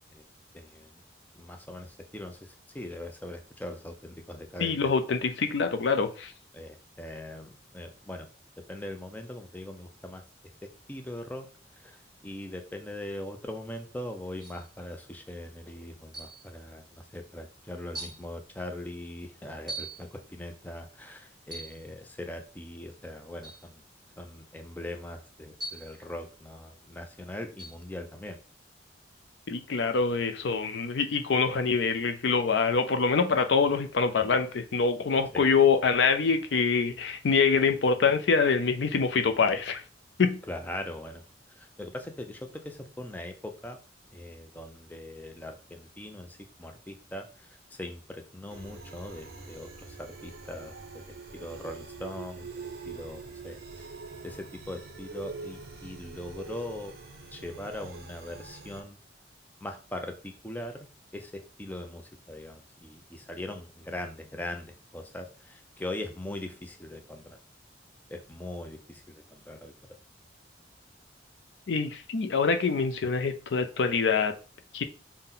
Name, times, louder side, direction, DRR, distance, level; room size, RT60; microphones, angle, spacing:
voice 1, 0.5-0.9 1.3-4.9 6.5-8.3 8.7-10.2 10.6-11.5 11.7-23.8 24.2-28.4 35.3-35.5 40.5-41.2 41.5-43.8 44.1-51.0 51.3-53.9 54.2-56.9 57.3-59.0 59.6-67.4 68.1-69.7, left 1 dB, 10° left, 0.4 m, -41 dB
voice 2, 4.6-6.3 29.5-39.8 40.2-40.4 71.7-74.3 74.7-74.8, left 5 dB, 75° left, 0.5 m, -25 dB
sound 1, 14.4-14.7 16.1-16.5 17.2-17.3 17.9-18.3 19.7-20.0 21.4-21.8 23.4-23.7 25.6-26.0 27.6-27.8, right 2 dB, 25° right, 1.1 m, -40 dB
sound 2, 48.5-58.8, right 4 dB, 55° right, 0.6 m, -44 dB
5.6 x 2.1 x 3.7 m
head